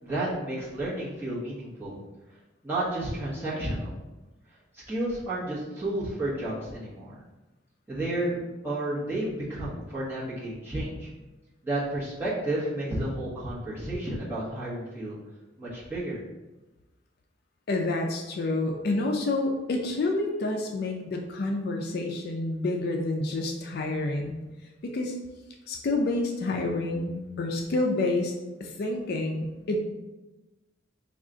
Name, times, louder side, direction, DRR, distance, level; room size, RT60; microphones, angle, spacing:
voice 1, 0.0-2.0 2.6-4.0 4.7-7.2 7.9-11.1 11.6-15.2 15.6-16.2, right 1 dB, 10° right, -9 dB, 1.0 m, -31 dB
voice 2, 17.7-24.4 24.8-25.1 25.7-28.3 28.6-29.8, left 2 dB, 50° left, 2 dB, 0.3 m, -28 dB
3.5 x 2.4 x 3.8 m, 1.1 s
head